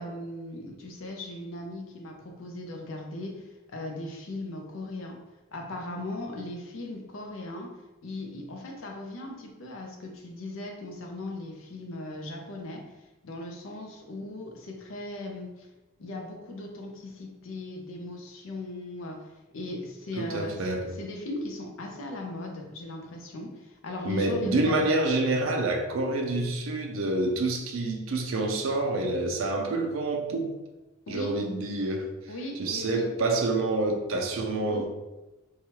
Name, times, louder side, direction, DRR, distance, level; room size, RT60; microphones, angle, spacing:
voice 1, 0.0-5.2 5.5-7.8 8.0-12.9 13.2-15.7 16.0-24.8 31.1-31.4 32.3-33.1 34.7-34.9, left 2 dB, 70° left, 0.5 m, -38 dB
voice 2, 20.2-20.9 24.0-30.5 31.1-32.1 32.6-34.9, right 2 dB, 75° right, 0.4 m, -27 dB
3.0 x 2.3 x 2.8 m
head